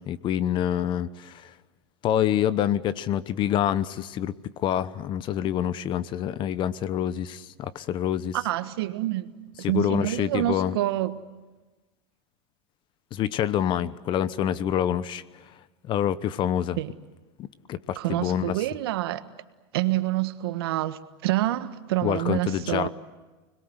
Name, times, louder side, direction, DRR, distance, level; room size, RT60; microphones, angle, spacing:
voice 1, 0.0-1.5 2.0-8.4 9.6-10.8 13.1-15.2 15.8-16.8 17.4-18.6 22.0-22.9, left 10 dB, 40° left, 1.1 m, -27 dB
voice 2, 8.3-9.3 9.6-11.2 16.8-16.9 17.9-19.2 19.7-22.9, right 15 dB, 70° right, 1.6 m, -27 dB
30.0 x 21.5 x 8.1 m
supercardioid pair, 120°, 13 cm